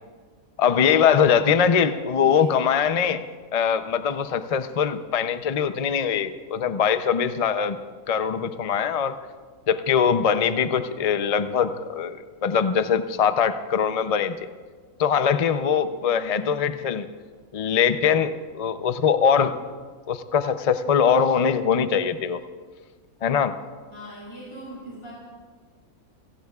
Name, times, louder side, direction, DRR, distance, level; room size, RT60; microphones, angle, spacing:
voice 1, 0.6-3.2 3.5-7.8 8.1-9.2 9.7-14.4 15.0-17.1 17.5-19.6 20.1-22.4 23.2-23.6, left 7 dB, 45° left, 10 dB, 0.4 m, -22 dB
voice 2, 1.4-2.5 16.0-16.5 23.9-25.1, equal, 20° left, -7 dB, 4.4 m, -42 dB
29.0 x 17.0 x 2.4 m, 1.5 s
omnidirectional pair, 1.5 m